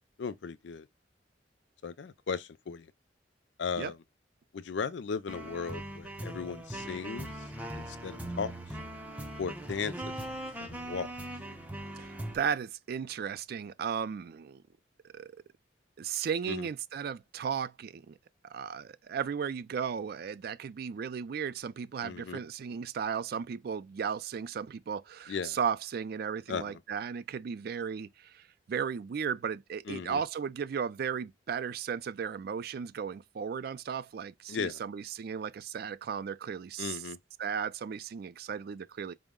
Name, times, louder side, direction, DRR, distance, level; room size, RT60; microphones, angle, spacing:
voice 1, 0.2-0.9 1.8-2.9 3.6-4.0 4.5-7.3 7.7-8.5 9.4-10.2 10.6-11.1 16.5-16.7 22.0-22.4 25.3-25.6 26.5-26.8 29.9-30.2 34.5-34.8 36.8-37.2, left 5 dB, 70° left, 0.4 m, -36 dB
sound 1, 5.3-12.4, right 1 dB, 10° right, 0.6 m, -40 dB
voice 2, 12.3-14.6 15.1-15.3 16.0-18.2 18.4-37.0 37.4-39.1, right 7 dB, 55° right, 0.3 m, -35 dB
4.4 x 2.1 x 3.5 m
head